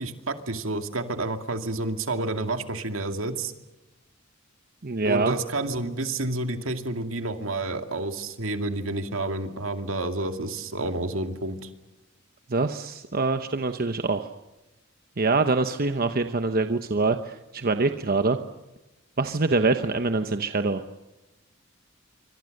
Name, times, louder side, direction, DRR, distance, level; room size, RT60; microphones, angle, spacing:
voice 1, 0.0-3.5 5.0-11.7, right 2 dB, 75° right, 6 dB, 2.4 m, -29 dB
voice 2, 4.8-5.4 12.5-14.3 15.2-18.4 19.2-20.8, right 3 dB, 45° right, 8 dB, 1.0 m, -24 dB
27.0 x 24.5 x 6.6 m, 1.0 s
head